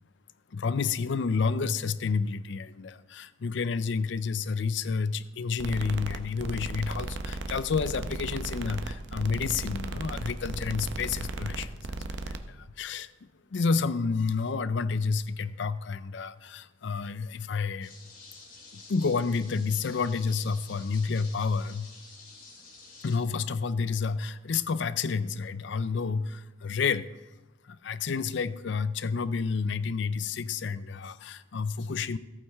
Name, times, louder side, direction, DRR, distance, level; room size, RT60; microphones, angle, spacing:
voice 1, 0.5-17.9 18.7-21.9 23.0-27.1 27.6-32.2, left 5 dB, 65° left, 16 dB, 0.5 m, -30 dB
sound 1, 5.6-12.4, right 2 dB, 65° right, 0.7 m, -36 dB
sound 2, 17.8-23.2, left 3 dB, 50° left, 3.0 m, -50 dB
14.5 x 8.9 x 3.5 m, 1.1 s
head